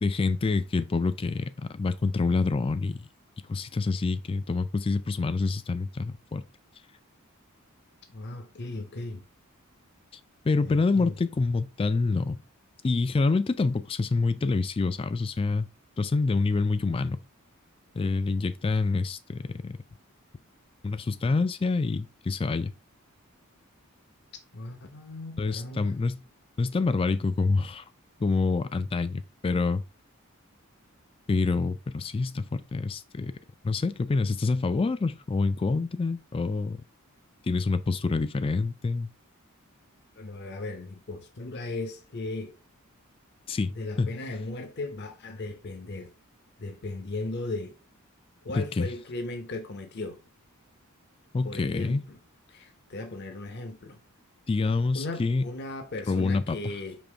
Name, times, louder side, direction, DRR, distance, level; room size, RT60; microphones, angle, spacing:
voice 1, 0.0-3.1 3.5-6.4 10.4-12.4 12.8-15.7 16.0-17.2 18.0-19.8 20.8-22.7 25.4-26.2 26.6-27.8 28.2-29.8 31.3-33.4 33.6-36.8 37.4-39.1 43.5-44.1 48.5-48.9 51.3-52.0 54.5-55.5 56.1-56.7, left 3 dB, 25° left, 0.3 m, -27 dB
voice 2, 8.1-9.2 10.6-11.2 24.5-26.0 40.2-42.6 43.7-46.1 46.6-47.8 48.4-50.2 51.4-52.2 52.5-54.0 54.9-57.0, left 2 dB, 50° left, 0.7 m, -37 dB
5.3 x 2.9 x 3.3 m
head